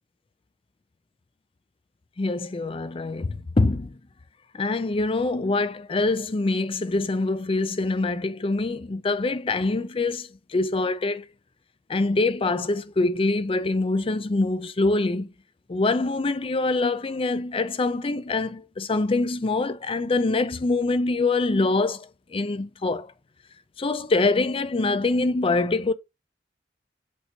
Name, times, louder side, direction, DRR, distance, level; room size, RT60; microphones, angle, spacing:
voice 1, 2.2-3.9 4.5-11.2 11.9-15.3 15.7-23.1 23.8-25.9, left 3 dB, 30° left, 0.5 m, -24 dB
8.3 x 2.9 x 4.4 m
head